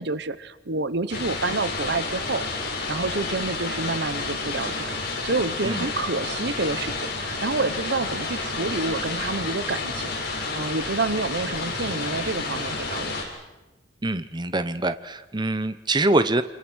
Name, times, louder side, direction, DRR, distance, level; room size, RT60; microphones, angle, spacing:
voice 1, 0.0-2.4 2.9-13.1, right 3 dB, 65° right, 14 dB, 1.0 m, -28 dB
sound 1, 1.1-13.2, left 3 dB, 55° left, 7.0 m, -30 dB
voice 2, 14.0-16.4, right 2 dB, 25° right, 11 dB, 1.0 m, -24 dB
28.5 x 27.0 x 6.4 m, 1.0 s
head